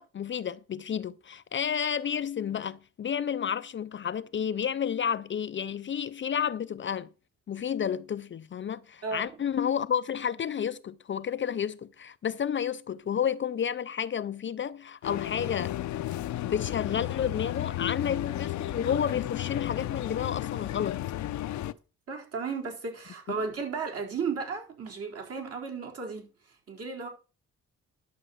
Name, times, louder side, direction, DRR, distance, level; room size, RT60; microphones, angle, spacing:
voice 1, 0.0-7.1 7.5-15.8 16.4-21.0 23.3-23.4, left 8 dB, 40° left, 0.6 m, -31 dB
voice 2, 9.0-9.3 22.1-26.3 26.7-27.1, right 5 dB, 50° right, 4.2 m, -34 dB
sound 1, 15.0-21.7, left 14 dB, 70° left, 0.7 m, -33 dB
11.5 x 4.2 x 7.8 m
cardioid pair, 90°, 30 cm